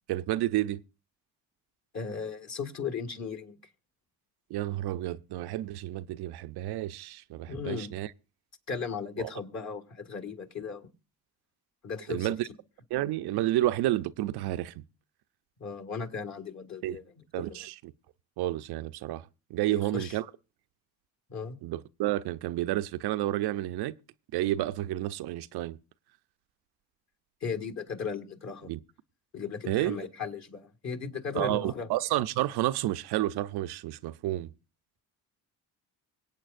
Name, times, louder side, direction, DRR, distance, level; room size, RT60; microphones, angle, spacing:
voice 1, 0.1-0.8 4.5-8.1 9.2-9.3 12.1-12.5 12.9-14.8 16.8-17.0 17.3-17.9 18.4-20.3 21.6-23.9 24.3-25.8 28.7-28.8 29.7-30.0 31.3-34.5, right 15 dB, 70° right, 0.6 m, -30 dB
voice 2, 1.9-3.6 7.5-7.9 8.7-10.9 11.8-12.3 15.6-17.0 17.4-17.6 19.7-20.2 21.3-21.6 27.4-28.7 29.3-31.9, left 6 dB, 40° left, 1.9 m, -36 dB
24.5 x 8.5 x 2.5 m
supercardioid pair, 65°, 41 cm